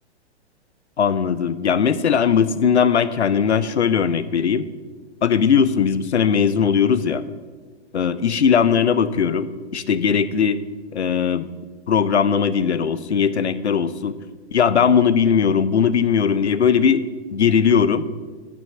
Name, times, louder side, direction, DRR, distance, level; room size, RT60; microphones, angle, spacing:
voice 1, 1.0-4.7 5.2-7.2 7.9-10.6 10.9-11.5 11.9-14.2 14.5-17.0 17.3-18.1, left 7 dB, 75° left, 14 dB, 0.6 m, -19 dB
9.1 x 6.2 x 6.7 m, 1.4 s
figure-of-eight pair, 105°, 34 cm